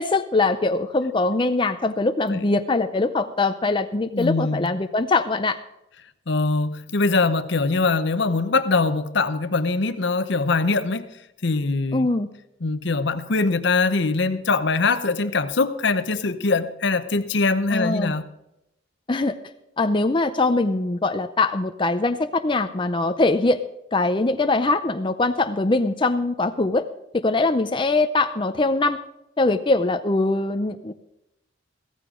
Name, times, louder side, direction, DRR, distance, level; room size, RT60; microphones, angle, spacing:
voice 1, 0.0-5.6 11.9-12.3 17.7-18.1 19.1-19.4 19.8-23.6 23.9-26.8 27.1-29.0 29.4-30.9, left 2 dB, 25° left, 0.6 m, -22 dB
voice 2, 4.1-4.7 6.3-11.1 11.4-12.1 12.6-18.2, left 3 dB, 65° left, 0.9 m, -22 dB
15.5 x 14.0 x 3.8 m
head